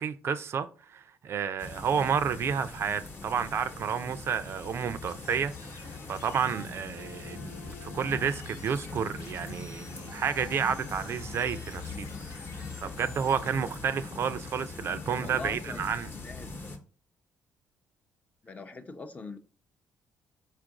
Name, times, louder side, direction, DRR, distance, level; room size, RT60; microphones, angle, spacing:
voice 1, 0.0-16.1, right 7 dB, 55° right, 0.4 m, -31 dB
sound 1, 1.6-16.8, left 3 dB, 45° left, 1.0 m, -42 dB
sound 2, 5.0-13.5, left 4 dB, 75° left, 1.0 m, -49 dB
voice 2, 15.2-16.5 18.4-19.4, left 3 dB, 25° left, 0.6 m, -42 dB
4.5 x 2.5 x 4.6 m
cardioid pair, 90°, 5 cm